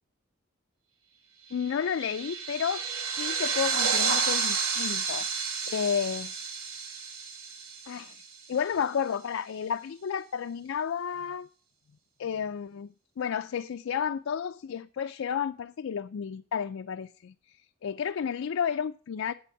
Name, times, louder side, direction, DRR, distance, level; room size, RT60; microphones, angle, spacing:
voice 1, 1.5-6.3 7.9-8.2 8.5-11.5 12.2-19.3, left 7 dB, 70° left, 9 dB, 0.4 m, -32 dB
sound 1, 1.6-8.5, right 5 dB, 80° right, 1.5 m, -31 dB
7.9 x 7.1 x 7.1 m, 0.43 s
head